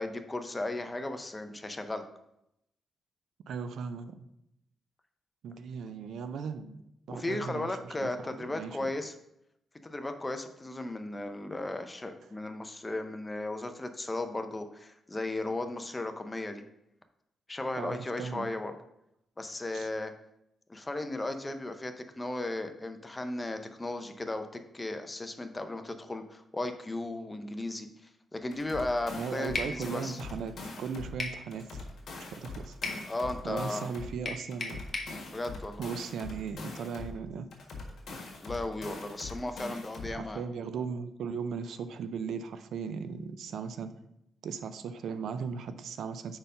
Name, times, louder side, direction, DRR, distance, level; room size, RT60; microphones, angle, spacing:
voice 1, 0.0-2.1 7.1-9.1 9.8-16.6 17.5-18.7 19.4-20.1 20.7-27.9 28.3-30.2 33.1-33.9 35.3-35.8 38.4-40.4, left 2 dB, 20° left, 7 dB, 0.6 m, -35 dB
voice 2, 3.5-4.1 5.4-6.8 7.1-8.9 17.8-18.5 19.7-19.9 29.2-31.8 32.4-32.8 33.4-34.8 35.8-37.5 40.0-43.9 44.4-46.4, right 6 dB, 80° right, 11 dB, 0.4 m, -37 dB
sound 1, 28.5-31.2 31.5-34.2 34.5-37.2 37.5-40.2, left 3 dB, 65° left, 1.7 m, -42 dB
sound 2, 29.5-29.8 31.2-31.4 32.8-33.0 34.2-35.1, left 3 dB, 35° left, 1.0 m, -34 dB
5.1 x 4.5 x 5.3 m, 0.81 s
cardioid pair, 110°, 0 cm